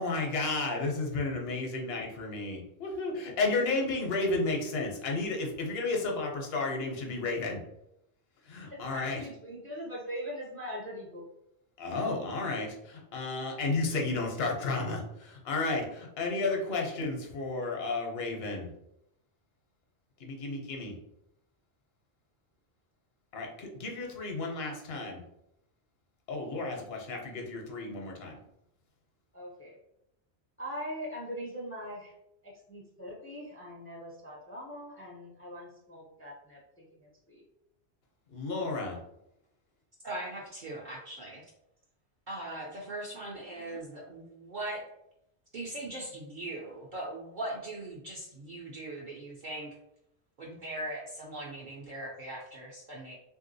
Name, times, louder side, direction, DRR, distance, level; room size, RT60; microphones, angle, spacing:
voice 1, 0.0-7.6 8.5-9.2 11.8-18.7 20.2-21.0 23.3-25.2 26.3-28.4 38.3-39.0, left 3 dB, 65° left, 1 dB, 0.9 m, -32 dB
voice 2, 8.7-11.3 13.2-13.7 29.3-29.8 30.6-32.1 32.4-37.4 43.5-43.8, equal, 20° left, -2 dB, 0.4 m, -42 dB
voice 3, 40.0-41.4 42.3-44.8 45.5-49.7 50.4-53.2, right 1 dB, 55° right, -4 dB, 0.7 m, -40 dB
3.3 x 2.6 x 2.6 m, 0.82 s
omnidirectional pair, 1.1 m